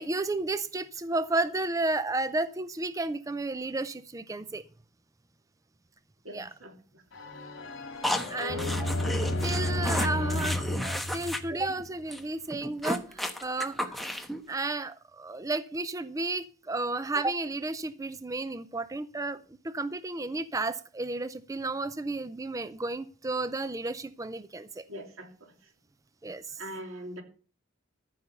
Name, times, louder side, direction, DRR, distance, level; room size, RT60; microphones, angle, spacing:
voice 1, 0.0-4.6 6.3-6.5 8.3-8.9 9.2-14.0 14.5-19.4 19.6-24.9 26.2-26.6, right 2 dB, 15° right, 14 dB, 0.4 m, -32 dB
voice 2, 6.2-7.0 8.4-8.8 24.9-25.5 26.6-27.2, left 1 dB, 85° right, 4 dB, 2.9 m, -41 dB
sound 1, 7.1-11.9, left 1 dB, 65° left, 2.6 m, -32 dB
sound 2, 8.0-11.4 11.7-11.8 12.1-12.2 12.5-14.4, equal, ahead, 1.1 m, -33 dB
14.0 x 5.7 x 6.7 m, 0.39 s
head